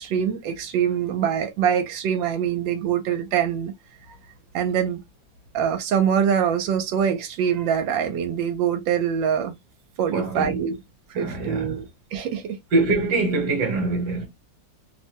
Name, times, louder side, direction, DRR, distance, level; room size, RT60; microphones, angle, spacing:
voice 1, 0.0-3.7 4.5-5.0 5.5-9.5 10.0-10.7 11.2-11.9 12.1-12.6, right 8 dB, 85° right, 1.3 m, -24 dB
voice 2, 10.1-10.6 11.1-11.8 12.7-14.3, right 3 dB, 65° right, 1.4 m, -24 dB
3.1 x 2.1 x 2.8 m
omnidirectional pair, 2.1 m